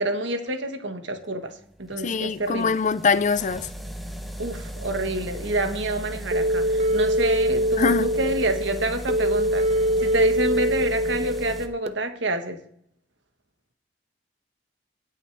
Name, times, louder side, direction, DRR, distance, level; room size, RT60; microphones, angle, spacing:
voice 1, 0.0-2.7 4.4-12.6, right 1 dB, 75° right, 1.4 m, -28 dB
sound 1, 1.3-11.7, equal, ahead, 0.9 m, -37 dB
voice 2, 2.0-3.7 7.8-8.1, left 5 dB, 40° left, 0.5 m, -23 dB
sound 2, 6.3-11.9, equal, 35° right, 0.7 m, -23 dB
19.5 x 6.5 x 3.5 m
head